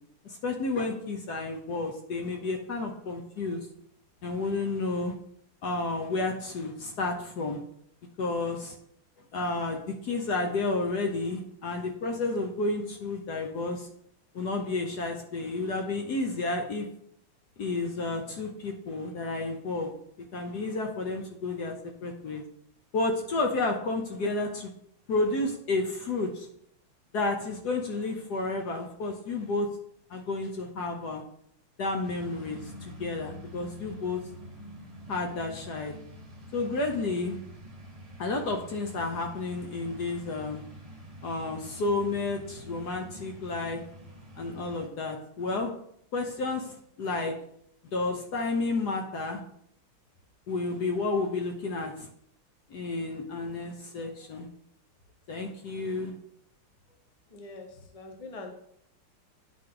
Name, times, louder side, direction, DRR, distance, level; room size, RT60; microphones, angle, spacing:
voice 1, 0.2-3.7 4.2-5.1 5.6-7.6 8.2-8.7 9.3-13.9 14.3-16.9 17.6-19.9 20.3-22.4 22.9-24.7 25.1-26.5 27.1-29.7 30.1-31.2 31.8-34.2 35.1-35.9 36.5-37.4 38.2-40.7 41.2-43.8 44.4-45.7 46.1-47.3 47.9-49.4 50.5-52.1 52.7-54.5 55.3-56.1, left 3 dB, 60° left, 3 dB, 1.2 m, -31 dB
sound 1, 32.0-44.9, equal, 20° right, 1.2 m, -46 dB
voice 2, 57.3-58.5, left 3 dB, 30° left, 2 dB, 0.7 m, -43 dB
10.0 x 4.1 x 3.8 m, 0.69 s
omnidirectional pair, 2.4 m